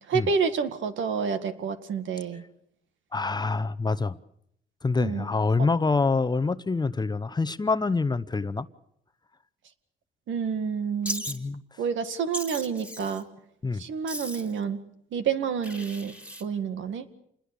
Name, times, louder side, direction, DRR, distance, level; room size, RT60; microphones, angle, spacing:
voice 1, 0.1-2.4 5.0-5.2 10.3-11.3 11.8-13.2 13.7-14.8 15.1-16.1 16.4-17.1, right 6 dB, 75° right, 9 dB, 2.0 m, -28 dB
voice 2, 3.1-4.2 4.8-8.7 11.3-11.6 13.6-13.8, left 3 dB, 20° left, 13 dB, 0.9 m, -26 dB
Wild animals, 11.0-11.4 12.3-13.2 14.1-14.6 15.6-16.4, equal, 5° right, 3.1 m, -36 dB
28.0 x 21.0 x 7.0 m, 0.73 s
cardioid pair, 90°, 20 cm